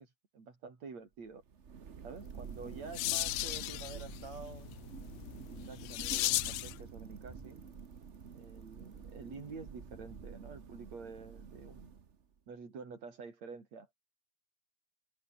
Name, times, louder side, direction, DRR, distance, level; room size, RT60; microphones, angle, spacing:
voice 1, 0.0-1.4 2.0-4.7 5.5-7.6 8.3-12.0 12.5-13.9, right 4 dB, 65° right, 5.8 m, -48 dB
Thunder, 1.3-12.3, right 6 dB, 85° right, 0.6 m, -49 dB
Bicycle, 2.2-10.2, right 1 dB, 10° right, 4.3 m, -59 dB
sound 1, 2.4-6.8, left 19 dB, 75° left, 1.7 m, -36 dB
omnidirectional pair, 3.4 m